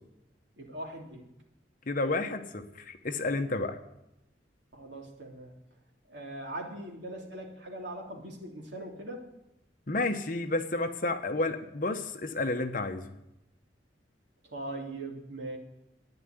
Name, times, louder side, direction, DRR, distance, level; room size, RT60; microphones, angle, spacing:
voice 1, 0.6-1.3 4.7-5.5 6.1-9.2 14.4-15.6, right 1 dB, 70° right, 0 dB, 3.2 m, -40 dB
voice 2, 1.9-3.8 9.9-13.1, left 2 dB, 45° left, 7 dB, 1.0 m, -31 dB
12.0 x 9.9 x 9.5 m, 0.88 s
head